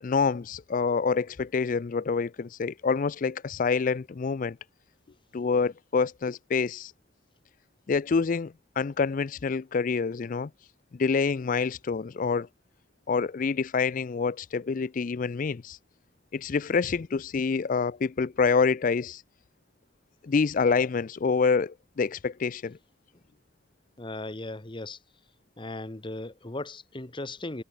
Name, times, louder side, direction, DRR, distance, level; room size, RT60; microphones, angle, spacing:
voice 1, 0.0-4.6 5.3-6.9 7.9-10.5 10.9-12.5 13.1-15.8 16.3-19.2 20.2-22.8, left 5 dB, 45° left, 0.4 m, -27 dB
voice 2, 24.0-25.0 25.6-27.6, left 2 dB, 25° left, 1.2 m, -37 dB
head